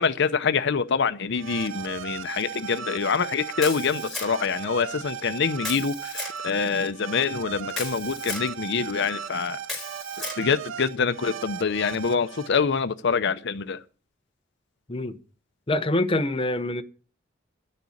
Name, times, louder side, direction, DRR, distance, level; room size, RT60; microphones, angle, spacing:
voice 1, 0.0-9.6 10.4-13.8, left 5 dB, 65° left, 0.7 m, -25 dB
sound 1, 1.3-12.5, right 8 dB, 80° right, 0.6 m, -37 dB
Camera, 3.6-4.6 5.6-6.4 7.7-8.5 9.6-10.4, left 2 dB, ahead, 4.0 m, -35 dB
voice 2, 15.7-16.8, left 1 dB, 30° left, 0.8 m, -25 dB
11.0 x 6.7 x 8.4 m
head